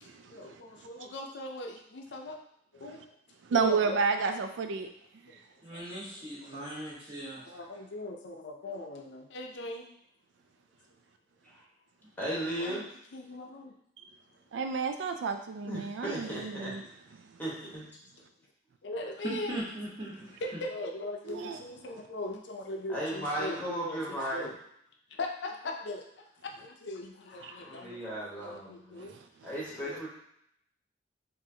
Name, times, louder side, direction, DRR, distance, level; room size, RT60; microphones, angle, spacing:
voice 1, 0.0-2.4 2.7-3.1 3.5-4.0 5.3-5.4 5.7-6.1 6.4-6.6 7.5-9.9 12.6-12.8 13.1-13.8 18.8-19.6 20.4-24.5 25.1-29.1 29.7-30.0, left 1 dB, 70° left, 2 dB, 0.5 m, -40 dB
voice 2, 3.5-4.9 14.5-16.8 21.4-21.6, right 5 dB, 80° right, 6 dB, 0.3 m, -30 dB
voice 3, 5.6-7.4 19.2-20.4, right 1 dB, 30° right, -8 dB, 1.4 m, -39 dB
voice 4, 12.2-12.8 15.7-16.7 17.4-17.9 22.9-24.4 27.7-29.1 29.4-30.1, right 1 dB, 10° left, -6 dB, 1.3 m, -36 dB
4.8 x 2.6 x 2.8 m, 0.73 s
head